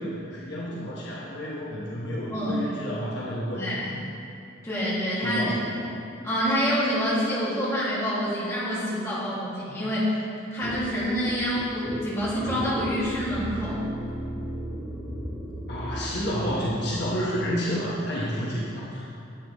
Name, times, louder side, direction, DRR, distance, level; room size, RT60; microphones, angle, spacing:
voice 1, 0.0-3.7 5.2-5.8 15.7-19.0, equal, 55° left, -6 dB, 1.3 m, -30 dB
voice 2, 2.3-2.7 3.5-3.9 4.6-5.6 6.2-10.1 10.5-13.8, equal, 15° left, -9 dB, 2.2 m, -27 dB
sound 1, 10.6-16.5, equal, 15° right, 1.1 m, -35 dB
10.0 x 8.2 x 3.1 m, 2.6 s
head